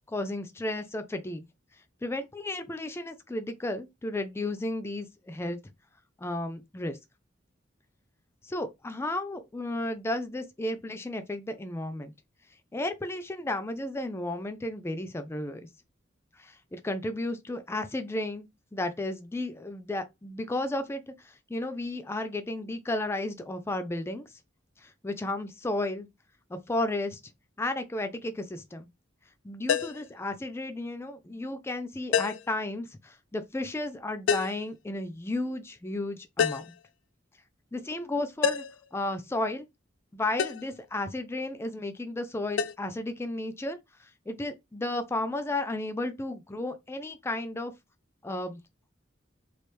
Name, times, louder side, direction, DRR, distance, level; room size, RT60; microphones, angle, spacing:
voice 1, 0.1-1.5 2.0-5.6 6.2-7.0 8.4-12.1 12.7-15.6 16.4-24.3 24.8-26.1 26.5-27.2 27.6-28.9 29.4-36.7 37.7-38.6 38.9-39.7 40.1-47.7 48.2-48.6, left 2 dB, 15° left, 0.3 m, -33 dB
sound 1, 29.7-30.1 32.1-32.5 34.3-34.6 36.4-36.8 38.4-38.8 40.4-40.7 42.6-42.7, left 7 dB, 90° left, 0.3 m, -27 dB
3.3 x 2.4 x 3.1 m
head